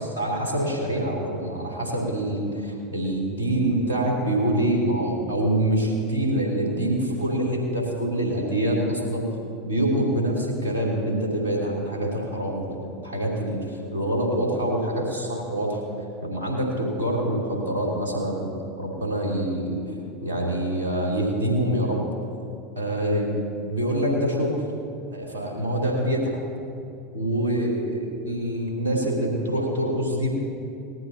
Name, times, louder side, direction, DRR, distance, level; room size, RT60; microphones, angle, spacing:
voice 1, 0.0-9.2 9.6-13.6 13.9-15.8 16.2-19.8 20.2-22.0 22.7-24.6 25.1-26.3 27.1-30.4, right 1 dB, 75° right, -3 dB, 3.5 m, -25 dB
19.5 x 14.0 x 2.9 m, 2.5 s
figure-of-eight pair, 85°, 0 cm